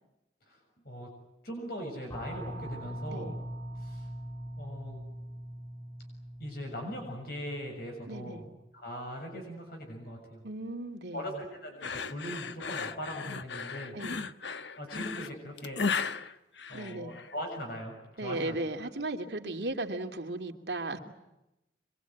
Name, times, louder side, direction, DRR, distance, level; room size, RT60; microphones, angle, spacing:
voice 1, 1.4-3.3 3.8-4.1 4.6-5.0 6.4-8.4 8.7-10.4 11.1-14.0 14.8-15.8 16.7-18.6, equal, 55° left, 2 dB, 6.9 m, -40 dB
sound 1, 2.1-8.4, right 1 dB, 20° left, 2.1 m, -42 dB
voice 2, 8.1-8.5 10.4-11.3 13.9-14.2 16.7-17.1 18.2-21.0, right 2 dB, 70° right, 3 dB, 2.8 m, -36 dB
sound 2, 11.8-17.3, left 5 dB, 80° left, 1.1 m, -35 dB
26.0 x 23.5 x 9.3 m, 0.92 s
head